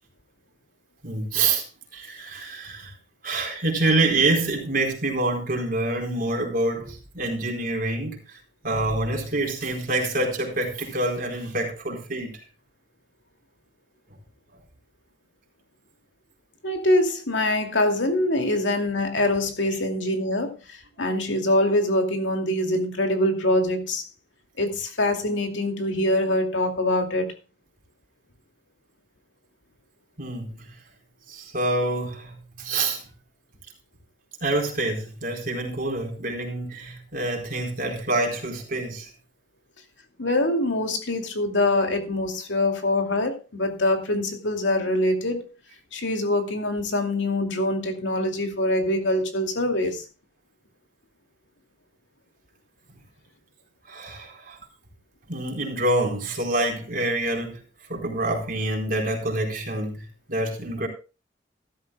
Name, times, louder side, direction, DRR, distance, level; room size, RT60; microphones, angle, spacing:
voice 1, 1.0-1.6 1.9-2.9 3.2-8.4 8.6-12.3 30.2-30.5 31.3-33.0 34.4-39.1 53.9-54.6 55.3-57.6 57.9-60.9, right 2 dB, 50° right, 4.2 m, -26 dB
voice 2, 16.6-24.0 24.6-27.3 40.2-45.5 45.9-50.0, left 1 dB, 80° left, 2.5 m, -24 dB
15.0 x 13.0 x 2.3 m
head